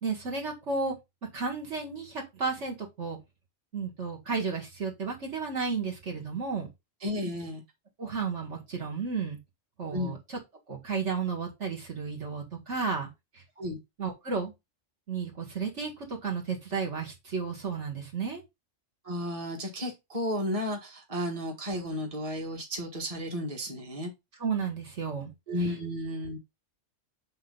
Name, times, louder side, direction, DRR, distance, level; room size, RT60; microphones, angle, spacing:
voice 1, 0.0-1.0 1.3-3.2 3.7-6.7 8.0-9.4 9.8-10.4 10.7-13.1 13.3-13.4 14.0-14.5 15.1-18.4 24.4-25.3 25.6-25.7, right 5 dB, 65° right, 0 dB, 2.2 m, -33 dB
voice 2, 7.0-7.6 9.9-10.2 13.6-13.8 19.0-24.1 25.5-26.4, left 1 dB, 30° right, 0 dB, 1.7 m, -33 dB
7.7 x 3.7 x 4.0 m, 0.22 s
omnidirectional pair, 1.3 m